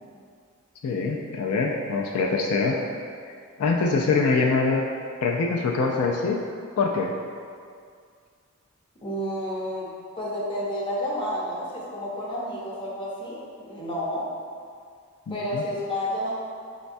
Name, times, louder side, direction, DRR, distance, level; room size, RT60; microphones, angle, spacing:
voice 1, 0.8-2.8 3.6-4.9 5.2-6.4 6.8-7.1 15.3-15.6, left 4 dB, 80° left, 0 dB, 0.3 m, -24 dB
voice 2, 9.0-9.9 10.2-14.2 15.3-16.3, equal, 25° left, -7 dB, 0.7 m, -30 dB
4.9 x 2.2 x 2.6 m, 2.2 s
head